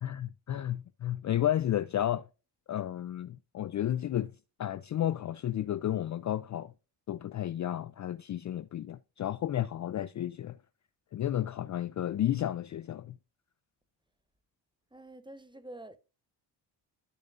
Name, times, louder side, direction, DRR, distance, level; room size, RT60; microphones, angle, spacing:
voice 1, 0.0-2.3 2.7-4.3 4.6-6.7 7.1-10.6 11.1-13.2, left 11 dB, 40° left, 0.4 m, -32 dB
voice 2, 14.9-16.0, right 1 dB, 10° right, 1.1 m, -47 dB
14.0 x 5.1 x 2.5 m
cardioid pair, 80°, 45 cm